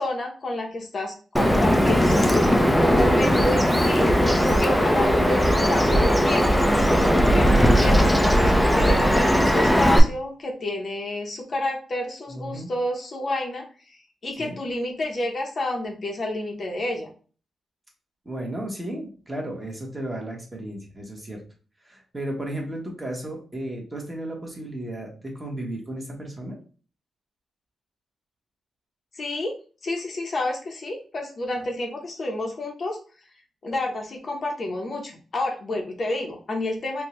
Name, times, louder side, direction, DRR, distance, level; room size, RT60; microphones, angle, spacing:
voice 1, 0.0-2.3 2.8-4.2 4.6-6.7 7.3-17.1 29.1-29.5 29.8-33.0 33.6-37.0, left 1 dB, 40° left, 1 dB, 0.7 m, -29 dB
Bird vocalization bird call bird song, 1.4-10.0, equal, 5° left, 0.4 m, -19 dB
voice 2, 12.3-12.7 14.4-14.6 18.2-21.4 21.8-26.6, right 1 dB, 15° right, -1 dB, 1.0 m, -34 dB
4.5 x 2.2 x 2.9 m, 0.38 s
wide cardioid pair, 130°, 0 cm